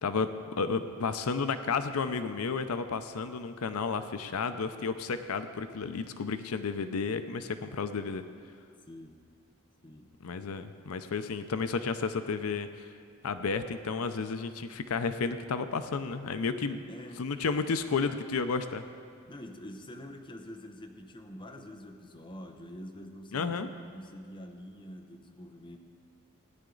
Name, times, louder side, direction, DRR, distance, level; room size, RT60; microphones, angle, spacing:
voice 1, 0.0-0.3 0.6-8.2 10.2-12.9 13.2-16.8 17.2-18.8 23.3-23.7, left 5 dB, 85° left, 10 dB, 0.5 m, -32 dB
voice 2, 8.9-9.2 9.8-10.1 16.7-17.3 19.3-25.8, equal, 25° left, 4 dB, 0.8 m, -46 dB
17.0 x 9.9 x 3.9 m, 2.2 s
head